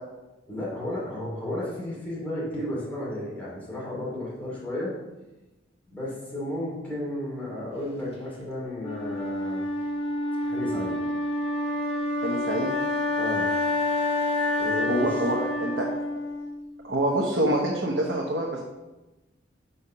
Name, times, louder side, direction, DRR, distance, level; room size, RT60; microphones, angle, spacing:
voice 1, 0.5-4.9 5.9-9.6 10.4-11.0 13.2-13.5 14.6-15.2, left 1 dB, 10° left, -7 dB, 2.6 m, -33 dB
Wind instrument woodwind instrument, 8.8-16.8, left 2 dB, 30° left, 1.5 m, -28 dB
voice 2, 12.2-12.7 14.9-15.9 16.8-18.6, right 1 dB, 75° right, -2 dB, 1.0 m, -26 dB
5.6 x 5.0 x 5.6 m, 1.1 s
head